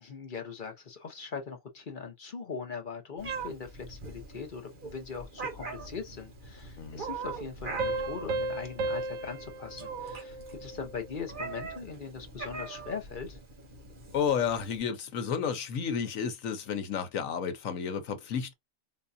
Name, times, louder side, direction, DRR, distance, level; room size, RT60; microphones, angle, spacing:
voice 1, 0.0-13.4, left 5 dB, 45° left, 0.9 m, -41 dB
Meow, 3.2-14.8, right 4 dB, 40° right, 1.1 m, -42 dB
sound 1, 7.8-11.1, right 2 dB, 80° right, 1.0 m, -35 dB
voice 2, 14.1-18.5, left 7 dB, 80° left, 1.2 m, -31 dB
4.0 x 2.3 x 2.6 m
omnidirectional pair, 1.4 m